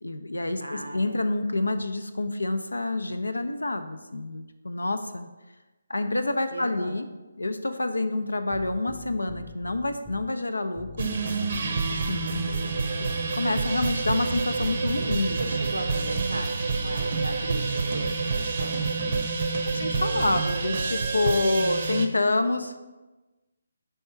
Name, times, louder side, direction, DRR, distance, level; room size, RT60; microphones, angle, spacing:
voice 1, 0.0-5.3 5.9-7.1 7.4-11.1 11.9-12.5 13.4-15.4 19.7-22.8, left 2 dB, 80° left, 8 dB, 0.5 m, -27 dB
voice 2, 0.6-1.3 6.5-7.0 15.4-19.1, right 1 dB, 90° right, 3 dB, 0.7 m, -37 dB
sound 1, 8.5-10.3 10.8-13.4 13.8-16.3 16.8-19.3 19.8-20.4, right 2 dB, 5° right, 0.4 m, -43 dB
sound 2, 11.0-22.1, right 4 dB, 45° right, 0.6 m, -28 dB
5.3 x 3.5 x 5.7 m, 1.1 s
figure-of-eight pair, 145°, 0 cm